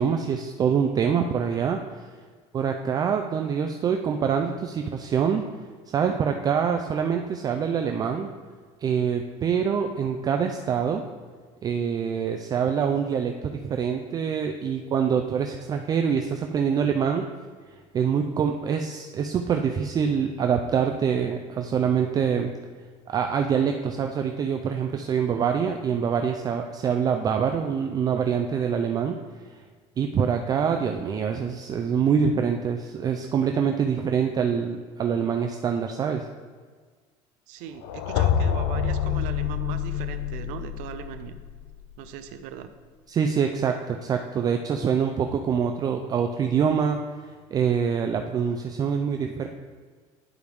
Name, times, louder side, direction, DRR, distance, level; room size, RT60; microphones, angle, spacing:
voice 1, 0.0-1.8 2.5-5.4 5.9-8.3 8.8-11.0 11.6-17.3 17.9-22.5 23.1-29.2 30.0-36.3 43.1-47.0 47.5-49.5, right 7 dB, 30° right, 4 dB, 0.4 m, -25 dB
voice 2, 37.5-41.3 42.0-42.7, right 9 dB, 75° right, 9 dB, 0.6 m, -39 dB
sound 1, 37.8-41.8, left 8 dB, 80° left, 0.6 m, -27 dB
10.5 x 4.7 x 3.4 m, 1.5 s
cardioid pair, 140°, 14 cm